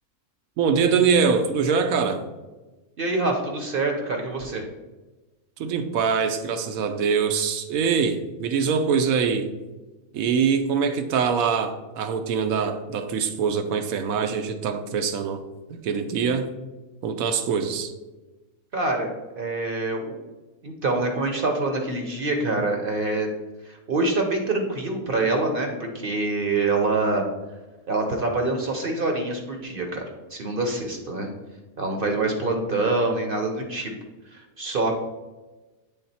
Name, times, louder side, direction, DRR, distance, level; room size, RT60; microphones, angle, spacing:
voice 1, 0.6-2.2 5.6-9.5 10.1-15.4 15.7-16.5 17.0-17.9, right 6 dB, 80° right, 1.1 m, -23 dB
voice 2, 3.0-4.6 18.7-20.2 20.6-23.3 23.7-27.2 27.9-30.0 30.3-31.3 31.8-33.9 34.3-34.9, right 2 dB, 45° right, 0.8 m, -25 dB
7.8 x 3.6 x 4.1 m
omnidirectional pair, 1.5 m